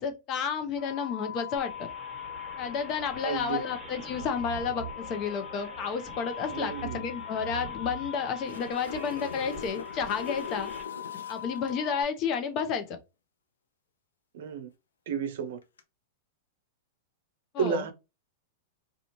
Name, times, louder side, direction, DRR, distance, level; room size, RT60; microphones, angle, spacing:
voice 1, 0.0-1.9 2.6-10.7 11.3-13.0 17.5-17.8, left 6 dB, 40° left, 0.7 m, -31 dB
sound 1, 0.8-12.0, left 10 dB, 20° left, 1.3 m, -41 dB
sound 2, 1.6-10.8, right 4 dB, 15° right, 1.3 m, -45 dB
voice 2, 3.2-3.6 6.5-7.0 14.3-14.7 15.1-15.6 17.6-17.9, right 7 dB, 70° right, 0.5 m, -32 dB
sound 3, 8.2-11.8 15.6-15.8, left 5 dB, 85° left, 0.5 m, -41 dB
2.5 x 2.3 x 2.9 m
hypercardioid pair, 115°, 0 cm